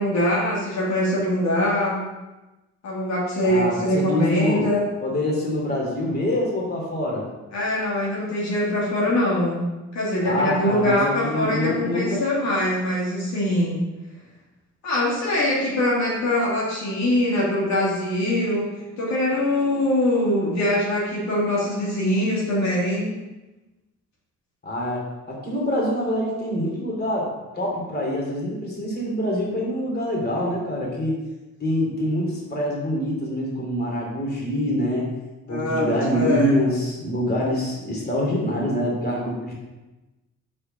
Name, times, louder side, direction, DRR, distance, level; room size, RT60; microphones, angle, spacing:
voice 1, 0.0-2.0 2.8-4.9 7.5-9.7 9.9-13.8 14.8-23.1 35.5-36.6, left 1 dB, 65° left, -5 dB, 2.7 m, -23 dB
voice 2, 3.4-4.7 5.0-7.3 10.2-12.2 24.6-31.1 31.6-35.1 35.5-39.5, left 1 dB, 35° left, -2 dB, 2.8 m, -25 dB
6.6 x 4.4 x 6.5 m, 1.1 s
cardioid pair, 90°, 30 cm